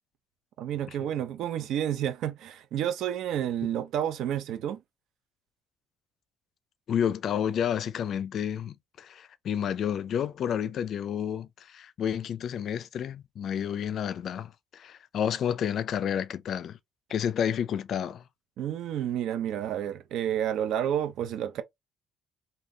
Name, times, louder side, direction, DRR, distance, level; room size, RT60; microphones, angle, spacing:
voice 1, 0.6-4.8 18.6-21.6, right 10 dB, 75° right, 0.6 m, -30 dB
voice 2, 6.9-16.8 17.1-18.2, left 8 dB, 60° left, 0.4 m, -30 dB
3.6 x 2.6 x 2.7 m
cardioid pair, 120°, 0 cm